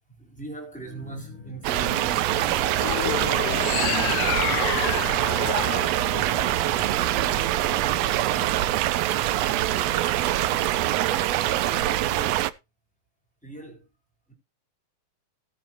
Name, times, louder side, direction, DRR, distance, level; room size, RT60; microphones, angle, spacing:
voice 1, 0.2-4.3 5.1-5.6 6.6-8.7 9.0-12.4 13.4-13.9 14.3-14.4, right 2 dB, ahead, 3.7 m, -41 dB
sound 1, 0.8-8.6, left 7 dB, 55° left, 2.0 m, -45 dB
sound 2, 1.6-12.5, right 14 dB, 80° right, 1.5 m, -24 dB
sound 3, 2.7-7.1, left 13 dB, 85° left, 2.4 m, -30 dB
18.0 x 7.2 x 2.9 m
omnidirectional pair, 3.7 m